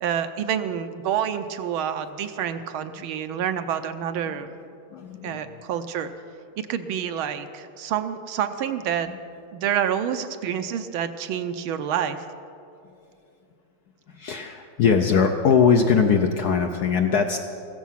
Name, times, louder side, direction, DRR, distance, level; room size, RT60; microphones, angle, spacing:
voice 1, 0.0-4.5 5.2-6.1 6.6-9.1 9.5-12.2, right 9 dB, 75° right, 9 dB, 1.5 m, -28 dB
voice 2, 4.9-5.6 14.1-17.4, left 6 dB, 65° left, 5 dB, 1.0 m, -21 dB
15.5 x 13.5 x 5.7 m, 2.6 s
omnidirectional pair, 2.4 m